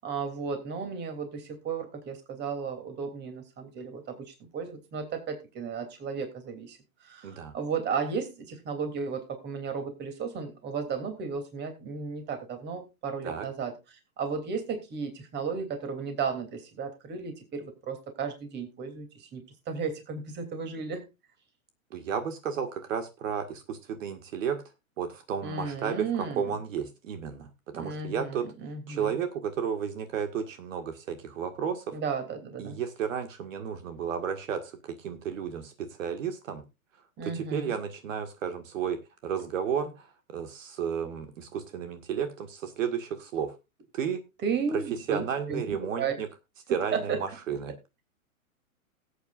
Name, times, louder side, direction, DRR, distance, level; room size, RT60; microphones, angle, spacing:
voice 1, 0.0-21.1 25.4-26.6 27.7-29.2 31.9-32.8 37.2-37.8 44.4-46.2 46.9-47.2, right 5 dB, 25° right, 7 dB, 3.0 m, -34 dB
voice 2, 7.2-7.6 13.2-13.4 21.9-24.6 25.0-26.0 26.4-27.5 27.7-28.4 28.9-32.0 32.6-36.6 37.2-39.0 39.2-43.5 43.9-44.2 45.1-46.3 46.7-47.7, right 7 dB, 65° right, 7 dB, 1.9 m, -32 dB
19.5 x 8.6 x 2.5 m, 0.25 s
hypercardioid pair, 120°, 42 cm